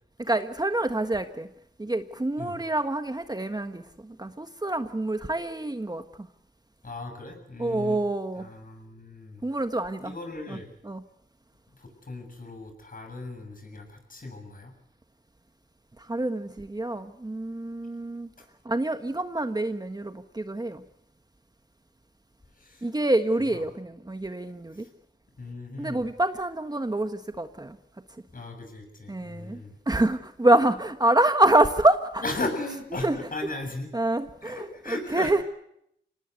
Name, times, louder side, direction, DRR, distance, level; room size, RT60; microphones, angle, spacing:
voice 1, 0.2-1.5 1.8-6.3 7.6-8.5 9.4-10.1 10.5-10.6 10.8-11.0 16.1-18.3 18.6-20.8 22.8-24.8 25.8-27.8 29.1-29.6 29.9-32.2 33.0-33.2 33.9-35.4, right 2 dB, 20° right, 8 dB, 1.4 m, -26 dB
voice 2, 6.8-8.0 8.4-9.4 10.0-10.7 11.8-14.7 18.4-18.5 22.6-22.9 23.4-23.6 24.7-24.9 25.4-26.0 28.3-29.8 32.2-33.9 34.4-35.3, left 2 dB, 50° left, 5 dB, 7.3 m, -37 dB
25.0 x 18.5 x 8.2 m, 0.76 s
cardioid pair, 60°, 19 cm